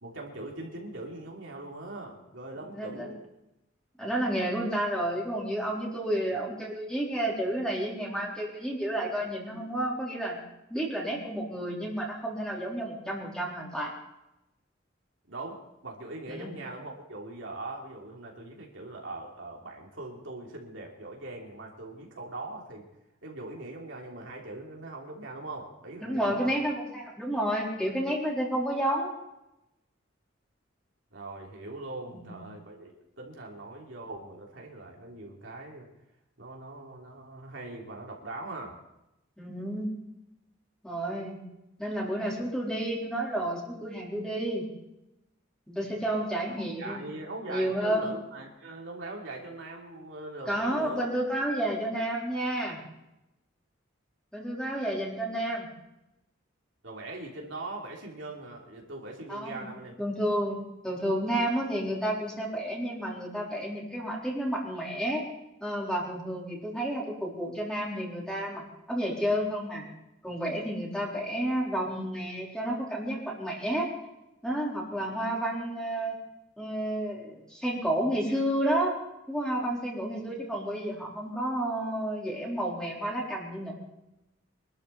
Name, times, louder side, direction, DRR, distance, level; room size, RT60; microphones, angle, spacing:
voice 1, 0.0-3.2 15.3-22.9 23.2-26.6 31.1-32.9 33.2-35.9 36.4-38.8 46.6-51.1 56.8-60.0, right 2 dB, 70° right, -1 dB, 3.2 m, -41 dB
voice 2, 2.7-3.1 4.0-10.4 10.7-13.9 16.3-16.5 26.0-29.1 32.1-32.2 39.4-39.9 40.8-41.4 41.8-44.7 45.7-47.2 47.5-48.1 50.5-52.8 54.3-55.7 59.3-59.7 60.0-60.6 60.8-65.2 65.6-69.8 70.2-73.9 74.4-76.2 76.6-78.9 79.3-83.7, right 1 dB, 5° left, -3 dB, 4.2 m, -31 dB
24.5 x 12.5 x 4.2 m, 0.89 s
head